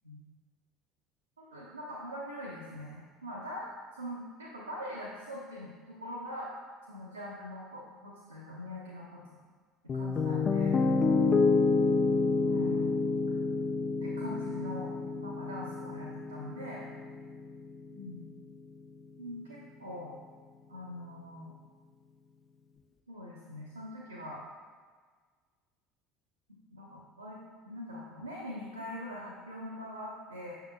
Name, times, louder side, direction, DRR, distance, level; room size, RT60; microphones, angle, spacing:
voice 1, 1.4-6.5 6.9-9.2 9.9-10.8 12.4-12.9 14.0-16.9 17.9-18.2 19.2-20.1 20.7-21.6 23.1-24.4 26.7-30.5, left 1 dB, 85° right, -8 dB, 0.8 m, -42 dB
Piano, 9.9-18.0, left 4 dB, 30° left, 0.4 m, -29 dB
6.8 x 6.6 x 2.2 m, 1.6 s
figure-of-eight pair, 65°, 0 cm